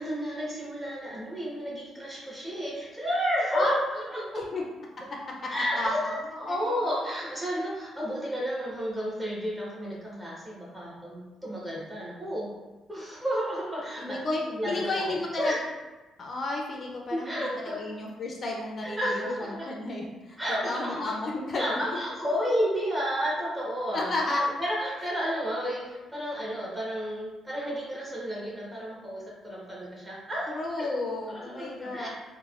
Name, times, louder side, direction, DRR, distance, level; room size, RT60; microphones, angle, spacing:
voice 1, 0.0-4.4 5.5-12.5 12.9-14.2 14.5-15.6 17.1-17.8 18.8-19.7 20.4-21.0 21.6-30.5 30.8-30.9 31.3-32.1, equal, 15° right, -6 dB, 1.0 m, -31 dB
voice 2, 5.1-6.1 6.5-6.7 14.0-15.5 16.2-22.0 23.9-24.4 30.5-32.1, left 2 dB, 45° left, -1 dB, 0.4 m, -32 dB
3.2 x 2.1 x 2.4 m, 1.2 s
cardioid pair, 90°, 0 cm